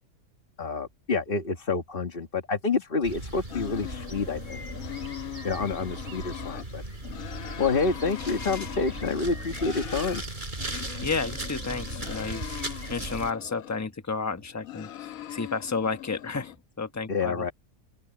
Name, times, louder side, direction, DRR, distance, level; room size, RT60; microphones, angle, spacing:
voice 1, 0.6-4.6 5.4-6.8 7.6-10.2 17.1-17.5, left 4 dB, 40° left, 1.8 m, -28 dB
sound 1, 3.0-13.3, right 1 dB, 35° right, 4.6 m, -37 dB
sound 2, 3.5-6.7 7.0-10.2 10.6-13.9 14.4-16.6, left 12 dB, 80° left, 1.3 m, -41 dB
sound 3, 8.1-8.7, left 3 dB, 60° left, 2.6 m, -43 dB
voice 2, 11.0-12.5 12.9-17.5, left 4 dB, 15° left, 0.9 m, -32 dB
open air
omnidirectional pair, 1.4 m